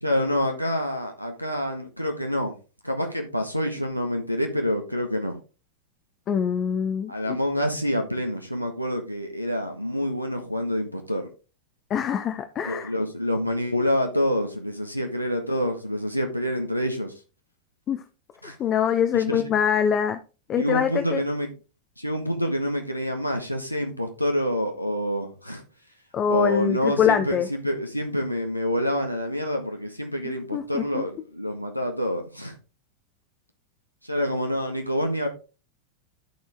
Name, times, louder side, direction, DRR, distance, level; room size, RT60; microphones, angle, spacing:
voice 1, 0.0-2.5 2.8-5.3 7.1-11.3 12.6-17.1 18.4-18.6 19.1-19.4 20.6-21.5 22.0-25.6 26.3-32.5 34.0-35.3, equal, 90° left, 1.5 m, -27 dB
voice 2, 6.3-7.4 11.9-12.9 17.9-18.0 18.6-20.2 20.5-21.2 26.1-27.5 30.2-31.0, left 8 dB, 30° left, 0.7 m, -24 dB
13.5 x 4.5 x 3.5 m
figure-of-eight pair, 90°, 0 cm